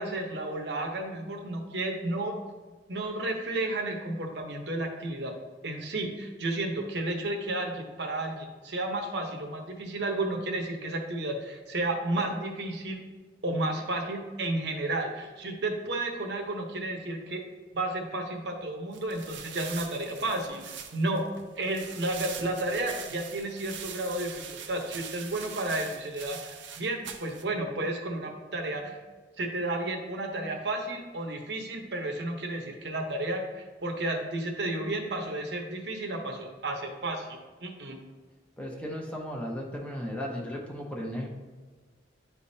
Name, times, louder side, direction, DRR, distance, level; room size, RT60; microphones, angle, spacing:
voice 1, 0.0-2.4 2.9-5.3 5.6-13.0 13.4-17.4 17.7-21.2 21.5-29.0 29.4-38.0, right 2 dB, 65° right, 3 dB, 0.9 m, -32 dB
sound 1, 18.9-27.4, right 7 dB, 85° right, 0.6 m, -43 dB
voice 2, 38.6-41.5, equal, 5° left, -1 dB, 0.9 m, -36 dB
10.0 x 3.5 x 2.7 m, 1.4 s
head